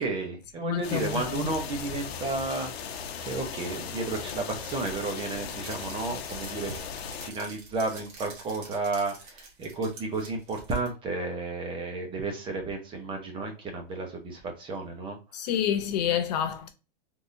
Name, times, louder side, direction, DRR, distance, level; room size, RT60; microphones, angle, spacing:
voice 1, 0.0-15.2, right 3 dB, 15° right, 0.7 m, -32 dB
voice 2, 0.6-1.5 15.3-16.7, left 9 dB, 45° left, 0.4 m, -28 dB
sound 1, 0.8-7.3, left 7 dB, 90° left, 0.7 m, -37 dB
sound 2, 4.6-10.9, right 3 dB, 45° right, 1.3 m, -48 dB
3.6 x 2.7 x 2.5 m
supercardioid pair, 155°, 30 cm